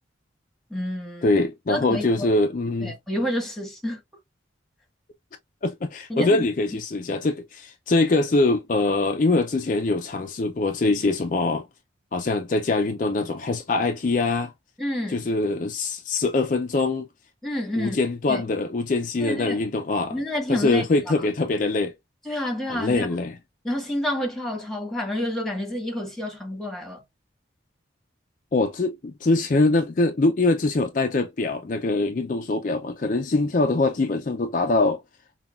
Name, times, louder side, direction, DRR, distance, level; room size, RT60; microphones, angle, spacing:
voice 1, 0.7-1.3 1.7-2.3 2.8-4.0 6.1-6.4 14.8-15.2 17.4-18.0 18.3-18.4 19.2-19.6 20.1-20.9 22.2-23.1 23.6-27.0, left 1 dB, ahead, 1.4 m, -29 dB
voice 2, 1.2-2.9 5.6-11.6 12.1-14.5 15.1-17.1 17.8-20.2 20.5-21.9 22.7-23.4 28.5-35.0, left 2 dB, 45° left, 0.4 m, -23 dB
5.7 x 2.3 x 2.4 m
head